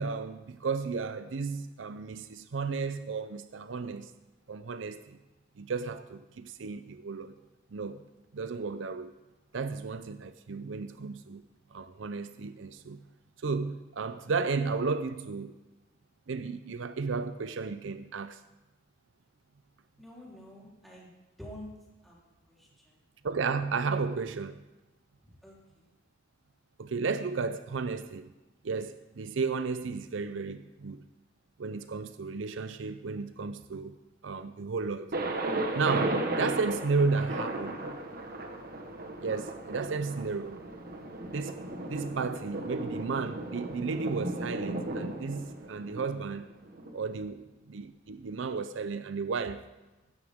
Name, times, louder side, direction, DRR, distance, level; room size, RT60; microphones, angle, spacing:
voice 1, 0.0-4.1 4.5-5.2 5.6-7.3 7.7-8.0 8.3-9.1 9.5-11.4 11.7-13.0 13.4-15.5 16.3-18.4 23.2-24.6 26.8-28.3 28.6-31.0 31.6-34.0 34.2-35.1 35.7-38.0 39.2-40.6 41.3-41.6 41.9-46.4 46.9-49.6, right 4 dB, 70° right, 0.5 m, -33 dB
voice 2, 20.0-21.1 21.4-21.7 22.0-22.2 22.5-23.0 25.2-25.9 47.2-47.3, left 1 dB, ahead, 3.7 m, -48 dB
Thunder, 35.1-46.9, right 2 dB, 50° right, 1.3 m, -35 dB
15.5 x 13.5 x 3.6 m
head